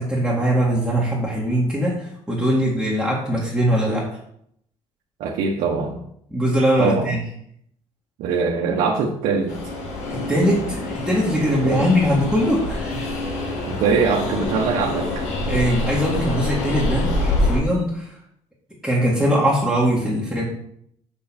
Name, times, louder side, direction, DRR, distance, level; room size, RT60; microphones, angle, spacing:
voice 1, 0.0-4.2 6.3-7.2 10.1-13.1 15.4-18.2 18.8-20.4, equal, ahead, -7 dB, 2.1 m, -21 dB
voice 2, 5.2-6.0 6.8-7.0 8.2-9.6 11.6-11.9 13.6-15.1, right 5 dB, 80° right, -2 dB, 1.2 m, -22 dB
Train, 9.5-17.6, left 2 dB, 85° left, 2.1 m, -26 dB
6.8 x 6.5 x 4.3 m, 0.70 s
cardioid pair, 100°, 12 cm